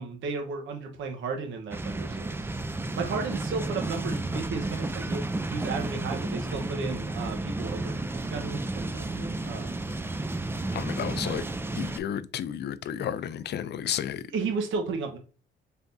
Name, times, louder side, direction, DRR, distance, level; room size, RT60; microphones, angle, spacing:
voice 1, 0.0-2.3 3.0-5.2 5.5-9.8 11.0-11.5 14.3-15.2, right 4 dB, 75° right, 1.1 m, -34 dB
sound 1, 1.7-12.0, right 2 dB, 10° right, 0.4 m, -32 dB
voice 2, 10.7-11.4 11.8-14.2, left 9 dB, 60° left, 0.5 m, -32 dB
4.3 x 3.5 x 2.7 m
cardioid pair, 90°, 20 cm